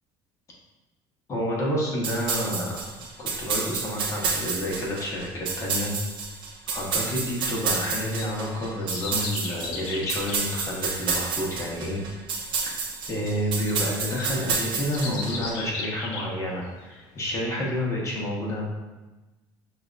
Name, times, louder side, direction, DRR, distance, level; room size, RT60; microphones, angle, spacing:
voice 1, 1.3-2.8 3.2-5.9 6.7-12.0 13.1-18.6, equal, 30° left, -3 dB, 1.1 m, -29 dB
sound 1, 2.0-15.5, right 5 dB, 55° right, 0.7 m, -30 dB
sound 2, 7.2-16.9 17.3-17.4, left 3 dB, 80° left, 0.6 m, -38 dB
5.9 x 2.5 x 2.4 m, 1.1 s
cardioid pair, 130°, 10 cm